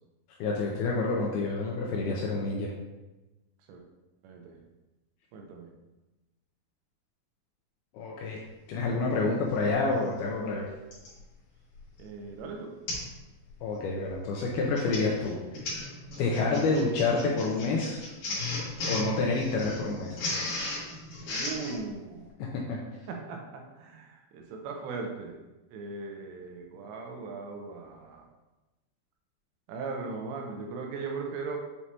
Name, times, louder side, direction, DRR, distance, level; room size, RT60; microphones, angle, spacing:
voice 1, 0.4-2.7 7.9-8.4 8.7-10.7 13.6-15.4 16.2-18.0 18.9-20.2 22.7-22.8, left 3 dB, 80° left, -2 dB, 2.3 m, -28 dB
voice 2, 4.2-4.6 5.3-5.7 12.0-12.8 21.3-22.4 23.1-25.4 25.7-28.3 29.7-31.6, right 4 dB, 85° right, 2 dB, 2.8 m, -38 dB
Printer, 10.9-11.2 11.8-12.0 12.3-12.4 12.9-13.1 13.5-13.7 14.5-21.8, left 2 dB, 55° left, 2.3 m, -35 dB
7.2 x 4.7 x 2.8 m, 1.1 s
omnidirectional pair, 5.1 m